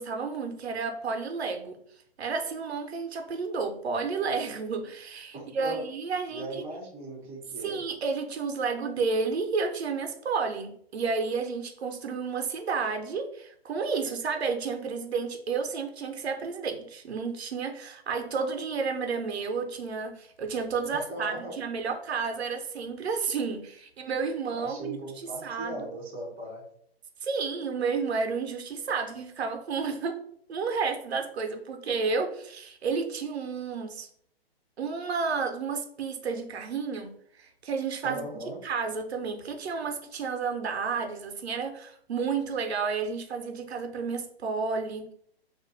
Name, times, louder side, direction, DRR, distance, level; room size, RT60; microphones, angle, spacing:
voice 1, 0.0-1.8 2.2-6.6 7.6-25.8 27.2-30.2 30.5-34.1 34.8-38.2 38.6-45.1, right 5 dB, 85° right, 5 dB, 0.7 m, -31 dB
voice 2, 5.3-5.8 6.3-7.8 20.9-21.6 24.6-26.6 38.0-38.6, right 1 dB, 10° right, -4 dB, 0.4 m, -38 dB
2.5 x 2.1 x 3.8 m, 0.65 s
hypercardioid pair, 145°, 31 cm